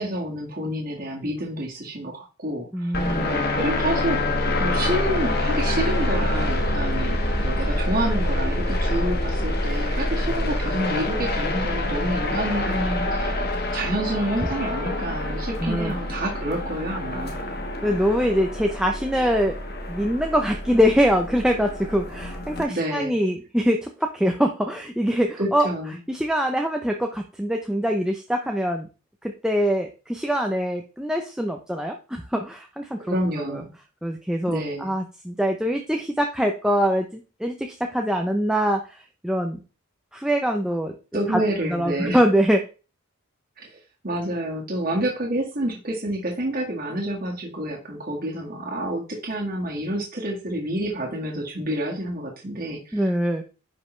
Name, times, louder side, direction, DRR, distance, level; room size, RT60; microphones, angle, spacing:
voice 1, 0.0-13.4 13.7-17.4 22.7-23.1 25.4-26.0 33.1-33.7 34.5-34.9 41.1-42.2 43.6-53.2, right 1 dB, 40° right, -2 dB, 1.8 m, -28 dB
voice 2, 2.7-3.3 15.6-15.9 17.8-19.6 19.9-25.7 26.1-28.9 29.2-33.6 34.0-39.6 40.1-40.9 41.3-41.4 41.7-42.6 52.9-53.4, equal, 5° right, 3 dB, 0.6 m, -23 dB
sound 1, 2.9-22.6, left 1 dB, 45° left, 1.3 m, -26 dB
10.0 x 5.3 x 3.2 m, 0.33 s
head